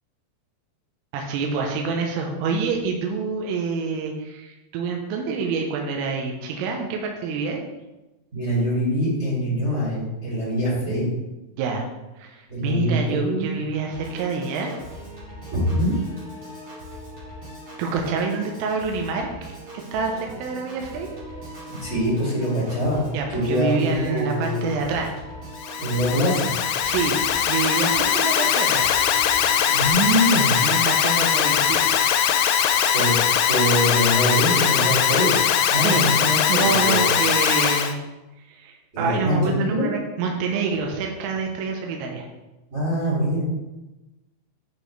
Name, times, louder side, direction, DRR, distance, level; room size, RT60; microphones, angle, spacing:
voice 1, 1.1-7.6 11.6-11.9 12.2-14.7 17.8-19.5 19.9-21.1 23.1-25.1 26.9-27.2 27.5-28.9 30.6-31.9 32.6-32.9 35.8-36.1 36.5-38.0 38.5-42.3, right 4 dB, 85° right, 2 dB, 3.4 m, -27 dB
voice 2, 8.3-11.1 12.5-13.4 15.6-15.9 21.8-23.0 23.3-24.7 25.8-26.5 29.7-30.6 32.9-33.1 33.5-35.3 35.7-37.1 38.9-39.9 42.7-43.4, equal, 25° right, -9 dB, 1.4 m, -23 dB
Piano / Organ, 13.9-29.9, right 1 dB, 45° right, 1.7 m, -40 dB
Alarm, 25.6-37.9, left 9 dB, 85° left, 3.2 m, -21 dB
8.6 x 5.0 x 3.3 m, 1.0 s
omnidirectional pair, 5.7 m